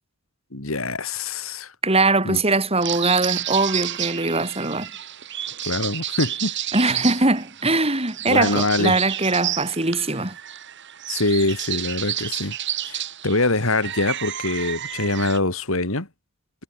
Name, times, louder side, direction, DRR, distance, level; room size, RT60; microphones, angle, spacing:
voice 1, 0.5-1.7 2.2-2.4 5.6-6.6 6.9-7.0 8.3-9.0 11.1-12.5 12.8-16.1, left 2 dB, 75° left, 3.4 m, -24 dB
voice 2, 1.8-4.9 6.7-10.4, right 3 dB, 30° right, 5.7 m, -21 dB
sound 1, 2.8-15.4, right 11 dB, 55° right, 3.7 m, -30 dB
head